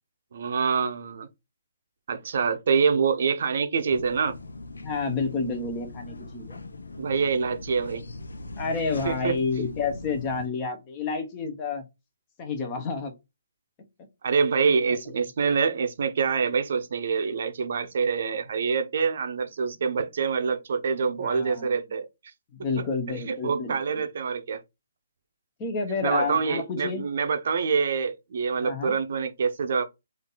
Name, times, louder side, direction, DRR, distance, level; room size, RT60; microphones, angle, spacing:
voice 1, 0.3-1.3 2.1-4.4 7.0-8.0 9.0-9.3 14.2-22.1 23.1-24.6 26.0-29.8, right 5 dB, 60° right, 0.7 m, -26 dB
sound 1, 3.9-10.5, left 2 dB, 85° left, 0.6 m, -40 dB
voice 2, 4.8-6.6 8.6-11.8 12.4-13.1 14.9-15.0 21.2-21.8 22.5-24.0 25.6-27.0 28.6-28.9, left 4 dB, 25° left, 1.0 m, -30 dB
3.8 x 2.7 x 3.8 m
hypercardioid pair, 150°, 0 cm